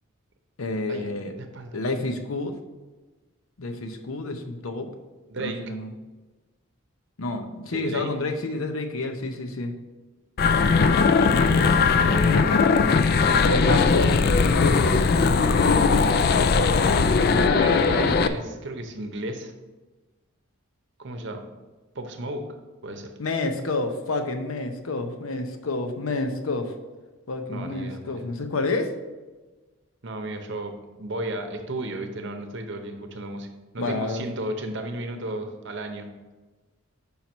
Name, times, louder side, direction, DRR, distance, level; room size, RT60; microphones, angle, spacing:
voice 1, 0.6-1.3 1.7-2.6 3.6-4.9 5.4-5.9 7.2-9.7 13.4-14.1 14.4-15.0 23.2-26.7 27.3-28.9 33.8-34.3, left 2 dB, 80° left, 6 dB, 0.7 m, -29 dB
voice 2, 1.4-1.8 5.3-5.6 7.6-8.1 10.6-12.6 13.2-14.2 15.6-16.4 17.5-19.5 21.0-21.5 21.9-22.4 22.8-23.1 27.5-28.2 30.0-33.5 33.7-36.1, right 1 dB, 60° right, 6 dB, 0.8 m, -34 dB
sound 1, 10.4-18.3, left 4 dB, 45° left, 0.3 m, -19 dB
5.5 x 4.5 x 5.3 m, 1.2 s
head